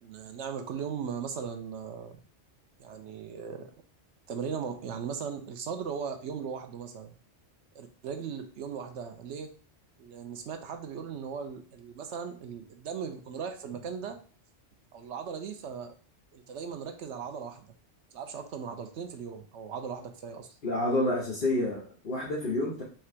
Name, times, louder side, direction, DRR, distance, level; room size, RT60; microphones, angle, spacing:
voice 1, 0.0-2.2 2.8-3.7 4.3-7.1 7.7-9.5 10.0-14.2 14.9-15.9 16.3-17.7 18.1-20.5, right 6 dB, 80° right, 6 dB, 1.0 m, -38 dB
voice 2, 20.6-22.8, left 1 dB, 50° left, -5 dB, 1.1 m, -29 dB
4.4 x 2.5 x 4.3 m, 0.40 s
omnidirectional pair, 1.2 m